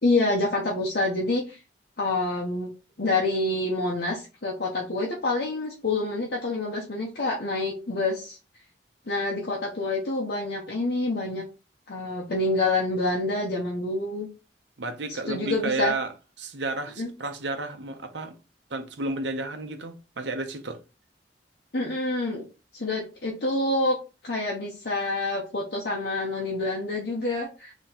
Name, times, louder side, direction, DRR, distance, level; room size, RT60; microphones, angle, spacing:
voice 1, 0.0-1.6 2.0-2.7 3.0-8.4 9.1-11.5 11.9-14.3 15.1-15.9 17.0-17.1 21.7-22.5 22.7-24.0 24.2-27.7, left 2 dB, 60° left, 1.0 m, -27 dB
voice 2, 14.8-16.1 16.4-18.3 18.7-20.8, right 3 dB, 75° right, 0.9 m, -31 dB
3.7 x 3.1 x 4.2 m
head